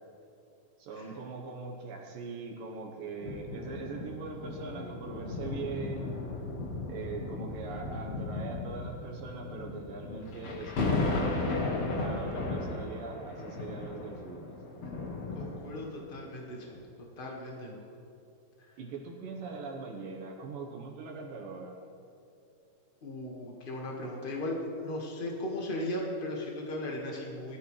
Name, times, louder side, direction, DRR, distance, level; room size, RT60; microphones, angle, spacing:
voice 1, 0.8-6.1 6.9-11.5 11.9-14.6 18.8-21.8, right 4 dB, 70° right, 0 dB, 2.8 m, -41 dB
sound 1, 3.2-16.0 16.7-16.8, left 3 dB, 50° left, 2.6 m, -35 dB
voice 2, 15.3-16.7 17.2-17.9 23.0-27.6, left 1 dB, 65° left, -2 dB, 0.5 m, -37 dB
22.0 x 13.5 x 3.3 m, 2.6 s
omnidirectional pair, 4.3 m